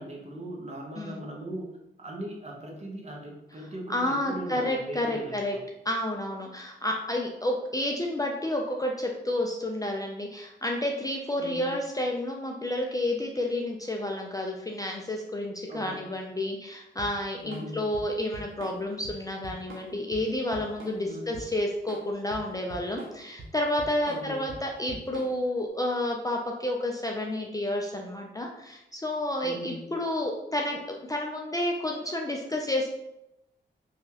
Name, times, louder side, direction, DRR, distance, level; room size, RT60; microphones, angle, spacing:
voice 1, 0.0-1.7 2.0-5.7 11.4-11.7 15.7-16.1 17.4-17.8 21.1-21.3 24.1-24.5 29.4-29.8, right 1 dB, 35° right, -1 dB, 0.8 m, -39 dB
voice 2, 3.9-5.6 5.8-32.9, left 1 dB, 20° left, 0 dB, 0.4 m, -30 dB
Drum kit / Drum, 17.0-25.6, right 2 dB, 90° right, 0.6 m, -44 dB
2.8 x 2.4 x 2.8 m, 0.86 s
cardioid pair, 60°, 20 cm